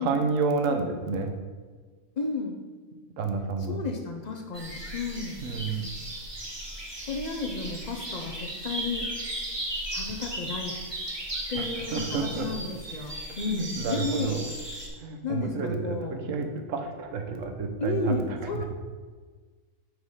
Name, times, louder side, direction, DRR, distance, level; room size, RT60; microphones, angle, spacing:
voice 1, 0.0-1.3 3.2-3.8 5.4-5.8 11.5-11.6 11.9-12.5 13.5-14.4 15.0-18.2 18.5-18.7, right 4 dB, 60° right, 5 dB, 1.2 m, -29 dB
voice 2, 2.2-2.6 3.7-5.4 7.1-9.1 9.9-10.7 11.5-14.4 15.2-16.2 17.8-18.7, left 4 dB, 55° left, 3 dB, 0.4 m, -32 dB
sound 1, 4.5-14.9, right 1 dB, 20° right, 1.2 m, -36 dB
6.5 x 4.8 x 5.5 m, 1.5 s
omnidirectional pair, 1.6 m